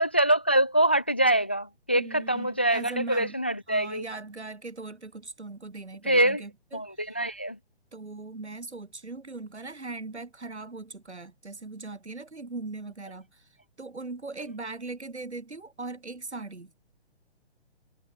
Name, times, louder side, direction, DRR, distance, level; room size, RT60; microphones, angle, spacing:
voice 1, 0.0-4.0 6.0-6.4 6.7-7.6, right 1 dB, 10° left, 0.3 m, -24 dB
voice 2, 1.9-3.4 3.7-7.2 7.9-13.4 13.8-16.7, right 3 dB, 90° right, 7.8 m, -39 dB
figure-of-eight pair, 140°, 33 cm